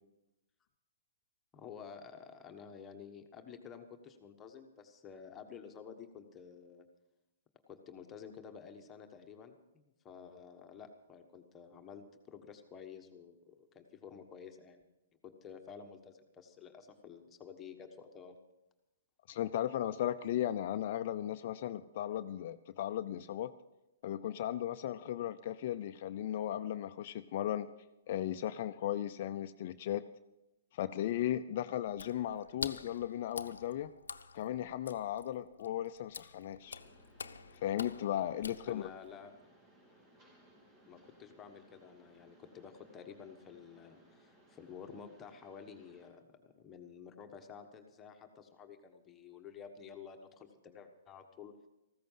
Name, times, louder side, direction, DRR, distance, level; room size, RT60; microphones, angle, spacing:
voice 1, 1.5-6.8 7.7-14.8 15.2-18.4 38.7-39.5 40.9-51.5, left 7 dB, 20° left, 5 dB, 1.4 m, -51 dB
voice 2, 19.3-23.5 24.0-27.7 28.1-30.0 30.7-33.9 34.3-36.8 37.6-38.8, left 11 dB, 50° left, 10 dB, 0.5 m, -36 dB
Water / Splash splatter, 31.9-39.1, left 5 dB, 85° left, 0.7 m, -47 dB
Mechanisms, 36.6-46.1, right 1 dB, 35° right, 3.5 m, -64 dB
15.0 x 13.5 x 5.6 m, 0.95 s
hypercardioid pair, 135°, 0 cm